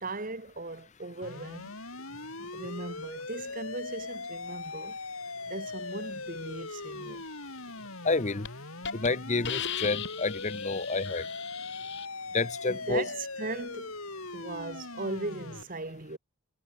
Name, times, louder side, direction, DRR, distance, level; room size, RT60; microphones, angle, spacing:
voice 1, 0.0-1.7 2.5-5.0 5.5-7.2 12.7-13.9 14.3-16.2, right 2 dB, 40° right, 1.6 m, -38 dB
sound 1, 1.2-15.6, left 3 dB, 80° left, 7.6 m, -40 dB
Hiss, 7.9-8.1 8.4-8.5 8.8-9.1 9.4-12.1, left 9 dB, 55° left, 6.8 m, -37 dB
voice 2, 8.0-8.5 8.9-11.2 12.3-13.1, left 3 dB, 35° left, 0.9 m, -29 dB
head